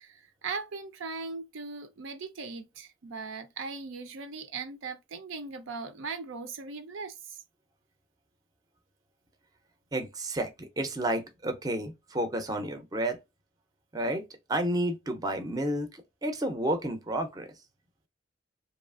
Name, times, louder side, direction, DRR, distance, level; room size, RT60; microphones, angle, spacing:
voice 1, 0.0-7.4, right 4 dB, 75° right, 0.5 m, -39 dB
voice 2, 9.9-13.2 13.9-17.5, right 1 dB, 20° right, 0.5 m, -31 dB
2.8 x 2.4 x 2.3 m
head